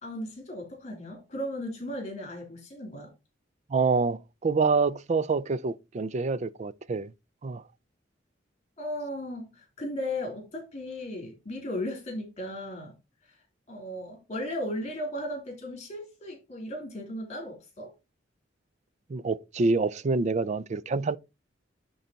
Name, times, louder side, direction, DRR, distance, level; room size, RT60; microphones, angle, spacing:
voice 1, 0.0-3.1 8.8-12.9 13.7-17.9, left 1 dB, 35° left, 3.2 m, -36 dB
voice 2, 3.7-7.1 7.4-7.6 19.1-21.2, right 4 dB, 35° right, 0.4 m, -26 dB
10.0 x 3.9 x 4.0 m
head